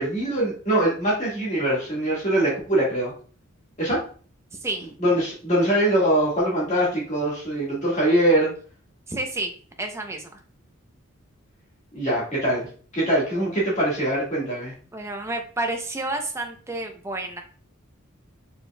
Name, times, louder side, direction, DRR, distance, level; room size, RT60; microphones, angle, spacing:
voice 1, 0.0-3.1 3.8-4.0 5.0-8.5 11.9-12.7 12.9-14.7, right 1 dB, 35° left, -5 dB, 1.7 m, -22 dB
voice 2, 4.5-4.9 9.1-9.5 9.8-10.3 14.9-17.4, right 2 dB, 15° right, 4 dB, 0.6 m, -30 dB
5.0 x 4.4 x 2.3 m, 0.42 s
head